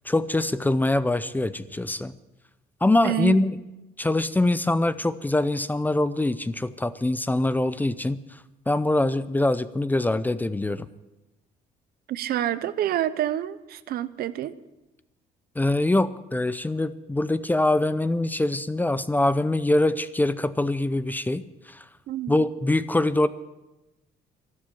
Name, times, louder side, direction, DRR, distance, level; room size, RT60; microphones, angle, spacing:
voice 1, 0.0-2.2 2.8-3.6 4.0-10.9 15.6-21.9 22.3-23.3, left 2 dB, 10° left, 14 dB, 0.5 m, -24 dB
voice 2, 3.0-3.4 12.1-14.6 22.1-22.3, right 12 dB, 65° right, 15 dB, 0.7 m, -27 dB
12.5 x 12.0 x 7.0 m, 1.0 s
cardioid pair, 110°, 17 cm